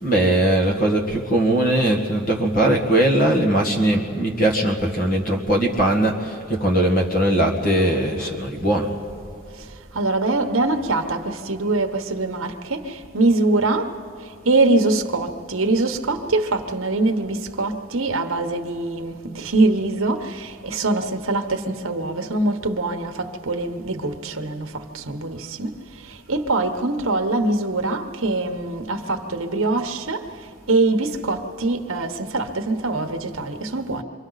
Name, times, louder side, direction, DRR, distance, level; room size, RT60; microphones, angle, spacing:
voice 1, 0.0-8.9, right 1 dB, 40° left, 2 dB, 2.0 m, -20 dB
voice 2, 9.9-13.9 14.4-25.7 26.3-30.2 30.7-34.0, right 2 dB, 70° right, 6 dB, 1.2 m, -23 dB
28.0 x 24.5 x 4.1 m, 2.3 s
head